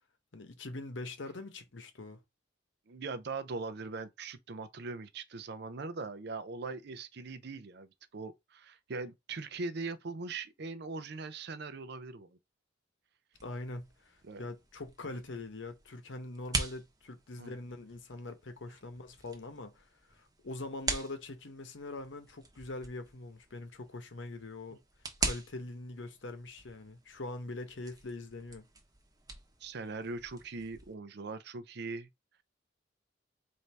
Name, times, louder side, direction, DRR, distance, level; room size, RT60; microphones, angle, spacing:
voice 1, 0.3-2.2 13.4-24.8 25.2-28.7, left 2 dB, 80° left, 0.9 m, -43 dB
voice 2, 2.9-12.4 14.2-14.4 17.4-17.5 29.6-32.1, right 3 dB, 60° right, 0.5 m, -41 dB
sound 1, 13.3-30.9, right 3 dB, 20° right, 0.9 m, -43 dB
4.3 x 2.7 x 3.3 m
head